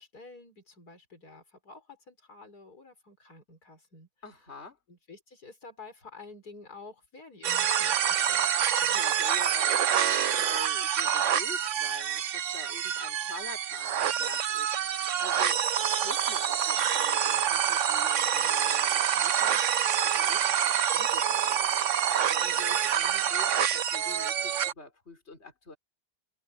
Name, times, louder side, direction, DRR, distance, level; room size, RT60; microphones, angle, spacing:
voice 1, 0.0-4.1 4.9-8.5, left 3 dB, 85° left, 5.5 m, -49 dB
voice 2, 4.2-4.8 8.8-21.7 22.3-25.8, left 3 dB, 45° left, 4.1 m, -46 dB
sound 1, 7.4-24.7, right 9 dB, 60° right, 1.1 m, -27 dB
omnidirectional pair, 1.6 m